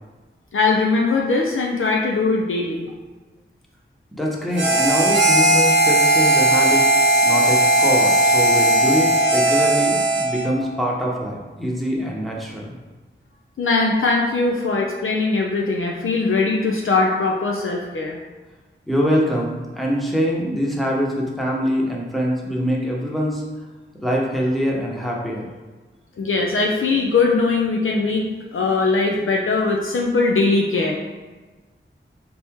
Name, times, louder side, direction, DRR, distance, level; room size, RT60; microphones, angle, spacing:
voice 1, 0.5-2.9 13.6-18.2 26.2-30.9, left 3 dB, 75° left, -1 dB, 0.5 m, -20 dB
voice 2, 4.1-6.9 7.2-12.7 18.9-23.4 24.0-25.5, equal, ahead, -3 dB, 0.9 m, -24 dB
Harmonica, 4.5-10.5, right 1 dB, 60° right, 0.8 m, -17 dB
4.0 x 3.0 x 3.5 m, 1.3 s
wide cardioid pair, 60°, 21 cm